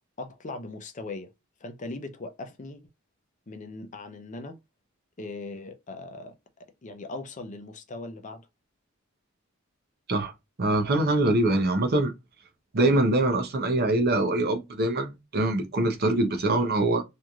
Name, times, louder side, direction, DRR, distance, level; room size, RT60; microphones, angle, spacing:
voice 1, 0.2-1.3 1.6-2.8 3.5-4.6 5.2-6.3 6.8-8.4 12.8-13.0, left 2 dB, 35° left, 0.5 m, -39 dB
voice 2, 10.6-12.1 12.7-17.0, right 2 dB, 50° right, 0.7 m, -24 dB
3.1 x 2.5 x 2.3 m
head